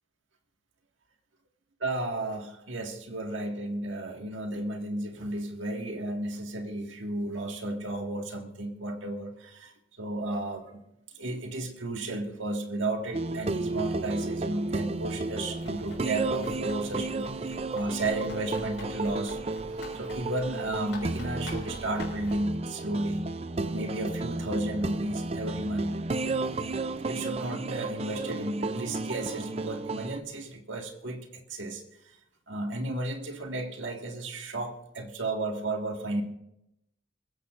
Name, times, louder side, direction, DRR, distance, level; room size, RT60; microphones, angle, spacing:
voice 1, 1.8-9.7 10.0-10.8 11.2-19.4 19.9-23.3 23.7-26.1 26.7-26.8 27.1-31.8 32.5-36.2, right 1 dB, 90° right, 3 dB, 1.8 m, -33 dB
sound 1, 13.1-30.2, right 3 dB, 30° right, 0.5 m, -33 dB
Run, 15.5-22.4, left 2 dB, 80° left, 4.8 m, -47 dB
25.5 x 15.0 x 2.5 m, 0.85 s
head